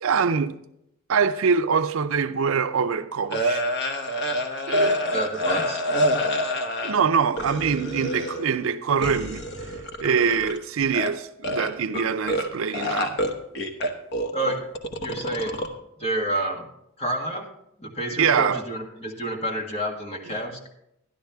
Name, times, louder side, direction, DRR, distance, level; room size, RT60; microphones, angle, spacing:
voice 1, 0.0-0.6 1.1-3.6 4.7-5.0 6.8-9.4 10.0-13.2 18.2-18.6, right 6 dB, 70° right, 0.5 m, -24 dB
sound 1, 3.3-7.0 7.4-8.6 9.0-10.6 10.8-11.1 11.4-12.5 12.7-15.7, equal, 50° left, 1.1 m, -27 dB
voice 2, 5.1-5.8 14.3-14.6 15.0-15.7 16.0-16.6 17.0-17.5 17.8-20.7, right 1 dB, 25° left, 1.6 m, -29 dB
11.5 x 11.5 x 3.5 m
head